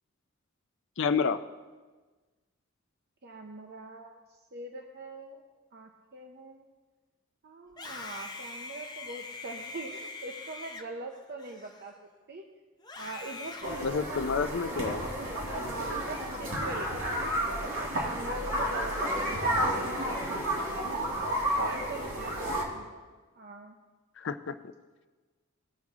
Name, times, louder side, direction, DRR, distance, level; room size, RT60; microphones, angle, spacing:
voice 1, 1.0-1.4 13.8-15.0 21.6-21.7 24.2-24.6, left 5 dB, 60° left, 11 dB, 0.5 m, -29 dB
voice 2, 3.2-5.4 5.7-6.6 7.4-11.9 12.3-12.4 13.0-15.0 15.6-17.3 17.8-20.2 20.6-20.9 21.6-23.0 23.4-23.7, right 2 dB, 50° right, 2 dB, 0.7 m, -42 dB
Screaming, 7.7-12.2 12.8-14.5, left 3 dB, 20° left, 0.7 m, -43 dB
sound 1, 13.6-22.6, equal, 70° right, 2.4 m, -31 dB
19.0 x 6.3 x 3.6 m, 1.3 s
head